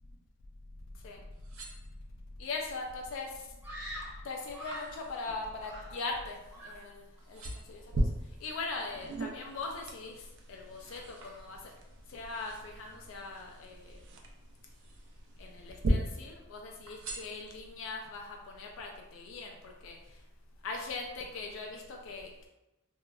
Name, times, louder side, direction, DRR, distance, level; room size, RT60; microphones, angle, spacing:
sound 1, 1.3-2.4 3.0-3.4 3.8-6.9 7.2-7.9 8.5-10.0 10.4-11.9 12.8-14.0 14.5-15.3 15.6-16.4 16.9-17.9 18.4-18.5, right 3 dB, 80° right, 0.7 m, -52 dB
voice 1, 2.4-3.3 4.2-7.0 7.3-7.8 8.4-10.2 10.5-11.6 12.1-14.0 15.4-20.0 20.6-22.5, left 3 dB, 70° left, 1 dB, 0.3 m, -40 dB
Screaming, 3.6-5.0 5.6-6.2 6.5-6.9, equal, 10° right, 0.8 m, -45 dB
sound 2, 7.4-15.9, right 2 dB, 60° right, 0.3 m, -40 dB
2.9 x 2.3 x 2.3 m, 0.97 s
head